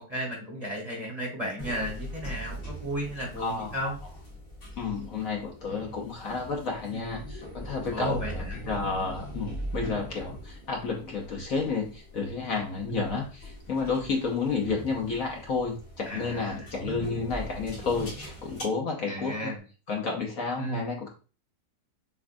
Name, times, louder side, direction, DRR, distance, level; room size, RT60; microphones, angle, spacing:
voice 1, 0.1-3.9 6.9-7.3 7.9-8.6 9.8-10.1 12.9-13.2 16.0-16.7 19.1-19.6 20.6-20.9, equal, 25° right, -2 dB, 1.2 m, -34 dB
sound 1, 1.6-18.6, equal, 85° left, 2.2 m, -41 dB
voice 2, 3.4-3.9 4.8-19.5 19.9-21.1, left 4 dB, 60° left, 0 dB, 1.1 m, -31 dB
7.2 x 2.4 x 2.6 m, 0.35 s
omnidirectional pair, 1.9 m